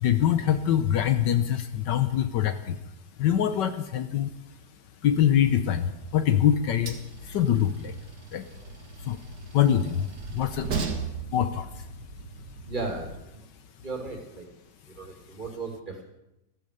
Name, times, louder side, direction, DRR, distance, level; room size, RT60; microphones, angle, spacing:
voice 1, 0.0-2.8 3.2-4.3 5.0-7.9 8.3-8.5 9.0-9.2 9.5-10.7 11.3-11.8, left 10 dB, 75° left, 10 dB, 1.4 m, -24 dB
Train, 5.4-13.2, right 4 dB, 60° right, 2.1 m, -38 dB
voice 2, 12.6-13.5 13.8-14.5 14.9-16.0, right 3 dB, 25° right, 2 dB, 3.0 m, -36 dB
14.5 x 14.5 x 6.7 m, 0.87 s
omnidirectional pair, 2.0 m